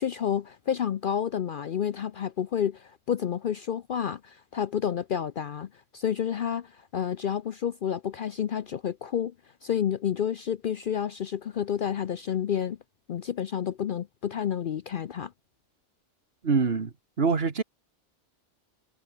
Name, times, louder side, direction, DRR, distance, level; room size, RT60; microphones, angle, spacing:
voice 1, 0.0-9.3 9.6-12.8 13.1-15.3, left 9 dB, 55° left, 0.6 m, -30 dB
voice 2, 16.4-17.6, right 5 dB, 55° right, 1.8 m, -25 dB
omnidirectional pair, 1.2 m